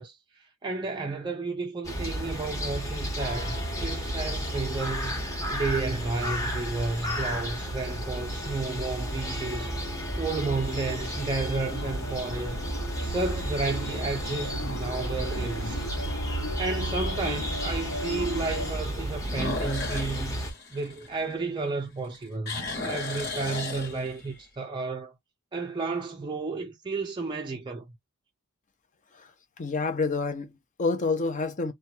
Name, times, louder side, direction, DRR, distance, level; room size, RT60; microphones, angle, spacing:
voice 1, 0.0-5.2 5.5-9.8 10.1-12.6 13.0-15.9 16.6-20.4 20.7-25.1 25.5-27.9, right 3 dB, 20° right, 0.4 m, -32 dB
sound 1, 1.8-20.5, equal, 15° left, 0.9 m, -33 dB
sound 2, 6.0-6.2 6.9-7.0 12.2-12.7 13.1-13.2 13.8-13.9 14.1-14.2 15.8-15.9 19.2-21.7 22.0-24.4, left 3 dB, 55° left, 1.2 m, -35 dB
sound 3, 7.4-18.8, right 1 dB, 75° left, 1.1 m, -37 dB
voice 2, 29.6-31.7, left 3 dB, 40° left, 0.6 m, -28 dB
2.8 x 2.2 x 2.7 m
head